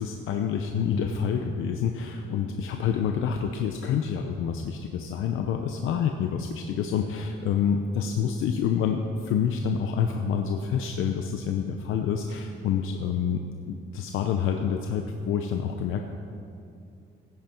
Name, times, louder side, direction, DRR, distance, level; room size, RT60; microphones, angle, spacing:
voice 1, 0.0-13.4 13.7-16.0, left 7 dB, 80° left, 4 dB, 0.7 m, -27 dB
16.0 x 9.4 x 4.5 m, 2.6 s
cardioid pair, 155°, 21 cm